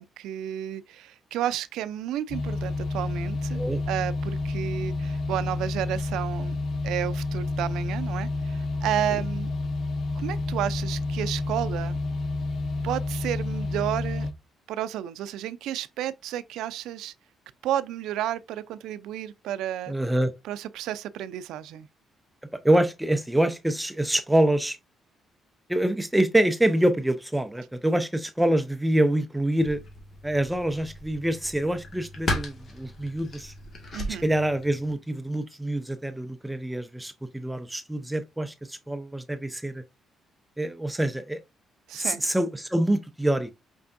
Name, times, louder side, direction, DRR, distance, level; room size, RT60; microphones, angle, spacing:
voice 1, 0.0-9.5 10.2-12.0 12.8-14.3 14.7-17.1 17.6-19.9 20.4-21.9 33.9-34.3 41.9-42.2, right 11 dB, 90° right, 0.3 m, -32 dB
sound 1, 2.3-14.3, left 2 dB, 60° left, 0.8 m, -29 dB
voice 2, 19.9-20.3 22.6-24.8 25.7-29.8 30.2-33.5 34.1-39.8 40.6-41.4 42.0-43.5, right 1 dB, 5° right, 0.5 m, -25 dB
sound 2, 29.6-34.9, left 1 dB, 40° left, 1.6 m, -36 dB
5.2 x 3.3 x 2.5 m
cardioid pair, 90°, 0 cm